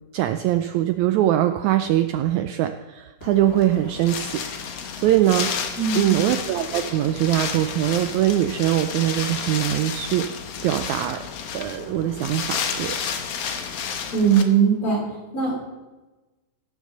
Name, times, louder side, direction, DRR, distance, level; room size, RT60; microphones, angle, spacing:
voice 1, 0.1-4.4 4.9-5.5 5.9-10.2 10.6-11.2 11.5-13.0, right 13 dB, 85° right, 8 dB, 1.6 m, -22 dB
Wind, 3.2-14.4, left 7 dB, 65° left, 1.7 m, -31 dB
voice 2, 5.8-6.3 14.1-15.0 15.3-15.7, right 6 dB, 40° left, -4 dB, 4.3 m, -20 dB
16.5 x 6.6 x 6.5 m, 1.1 s
omnidirectional pair, 3.9 m